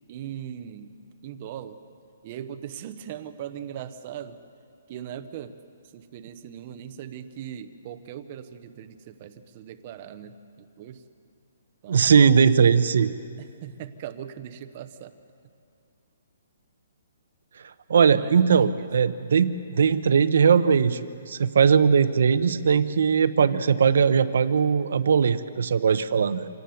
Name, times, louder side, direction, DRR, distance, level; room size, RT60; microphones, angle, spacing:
voice 1, 0.1-1.0 1.2-1.8 2.2-4.4 4.9-5.5 5.9-11.0 11.8-12.1 13.4-15.2 18.1-19.1, right 9 dB, 25° right, 11 dB, 0.8 m, -39 dB
voice 2, 11.9-13.1 17.9-26.5, right 6 dB, 55° right, 13 dB, 0.9 m, -20 dB
26.5 x 18.5 x 7.1 m, 2.6 s
hypercardioid pair, 180°, 0 cm